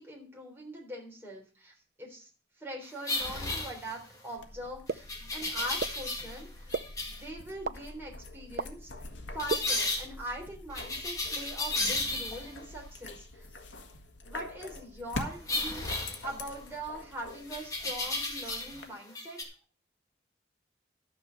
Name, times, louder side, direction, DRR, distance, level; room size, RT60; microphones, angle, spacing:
voice 1, 0.0-2.3 2.6-5.1 5.3-6.7 7.1-9.1 9.3-13.5 14.2-15.9 16.2-19.4, right 1 dB, 10° right, -2 dB, 3.7 m, -42 dB
sound 1, 3.0-4.2 5.1-6.4 6.7-7.2 9.4-10.0 10.7-12.6 15.5-16.7 17.5-18.8 19.1-19.4, left 2 dB, 20° left, 2.1 m, -34 dB
sound 2, 4.4-18.9, left 2 dB, 85° left, 1.6 m, -45 dB
Blop Mouth, 4.9-5.0 5.8-5.9 6.7-6.8 7.7-7.8 8.6-8.7 9.5-9.6, right 4 dB, 55° right, 0.5 m, -29 dB
12.0 x 6.7 x 6.5 m, 0.38 s
head